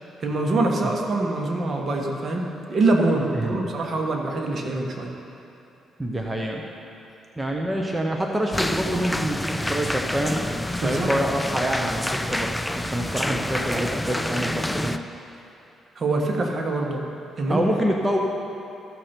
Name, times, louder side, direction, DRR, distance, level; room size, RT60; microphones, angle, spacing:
voice 1, 0.2-5.1 10.8-11.1 15.9-17.1 17.4-17.6, right 2 dB, 45° right, 1 dB, 1.4 m, -24 dB
voice 2, 6.0-6.6 7.4-10.4 10.8-15.0 17.5-18.2, right 1 dB, 10° right, 0 dB, 0.8 m, -26 dB
sound 1, 8.5-15.0, left 1 dB, 5° left, 0.4 m, -28 dB
14.0 x 6.5 x 4.5 m, 2.8 s
cardioid pair, 90°, 0 cm